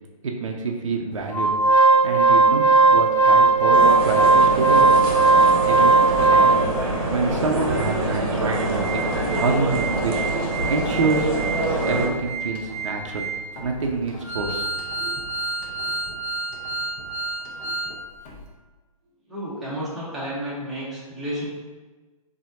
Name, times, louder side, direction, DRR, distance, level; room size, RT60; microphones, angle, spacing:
voice 1, 0.2-1.5 2.0-4.9 5.6-6.7 7.1-9.1 9.4-10.1 10.7-11.3 11.9-13.2 13.6-14.6 15.0-15.2, right 3 dB, 55° right, 1 dB, 0.6 m, -27 dB
Organ, 1.3-6.9 7.4-7.5 7.7-7.9 8.3-17.9 18.3-18.4, right 3 dB, 20° left, 0.6 m, -20 dB
sound 1, 3.7-12.1, right 1 dB, 40° right, 1.0 m, -25 dB
voice 2, 19.3-21.5, equal, ahead, -10 dB, 1.0 m, -31 dB
6.9 x 2.8 x 2.7 m, 1.3 s
figure-of-eight pair, 130°, 19 cm